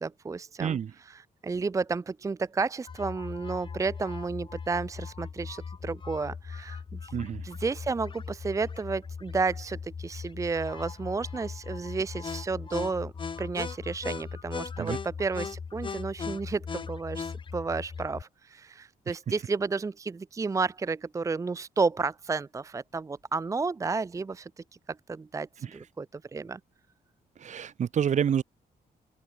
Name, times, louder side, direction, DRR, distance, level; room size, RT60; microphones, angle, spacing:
voice 1, 0.0-7.2 7.4-13.1 13.4-24.5 24.9-26.6, right 4 dB, 20° right, 0.7 m, -32 dB
voice 2, 0.6-0.9 7.1-7.4 14.8-15.0 19.1-19.2 27.4-28.4, right 8 dB, 50° right, 1.7 m, -28 dB
sound 1, 2.9-18.2, left 5 dB, 30° left, 3.0 m, -39 dB
open air
wide cardioid pair, 165°, 16 cm